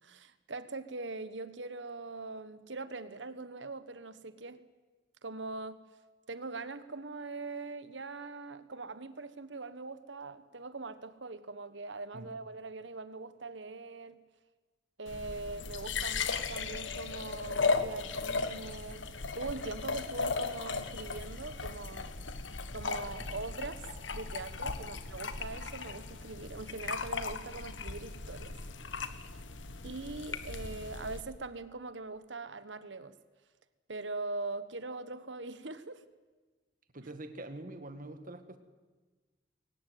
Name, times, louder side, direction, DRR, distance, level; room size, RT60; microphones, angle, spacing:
voice 1, 0.0-4.6 5.2-5.8 6.3-14.2 15.0-19.0 19.3-22.1 22.7-23.8 24.1-28.6 29.8-33.1 33.9-36.0, right 3 dB, 75° right, 13 dB, 1.4 m, -42 dB
sound 1, 15.1-31.2, left 4 dB, 85° left, 1.5 m, -37 dB
voice 2, 36.9-38.6, right 2 dB, 45° right, 9 dB, 1.9 m, -45 dB
22.0 x 18.5 x 9.4 m, 1.3 s
head